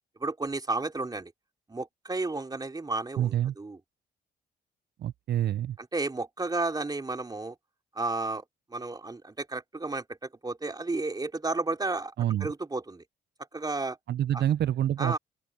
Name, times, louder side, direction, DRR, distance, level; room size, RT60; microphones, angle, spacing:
voice 1, 0.2-1.3 1.7-3.8 5.8-7.5 7.9-8.4 8.7-10.0 10.4-12.1 12.4-13.0 13.5-14.0 14.3-14.4 15.0-15.2, right 3 dB, 20° right, 3.3 m, -32 dB
voice 2, 3.2-3.5 5.0-5.8 12.2-12.5 14.1-15.2, right 11 dB, 55° right, 0.6 m, -27 dB
open air
cardioid pair, 90°, 20 cm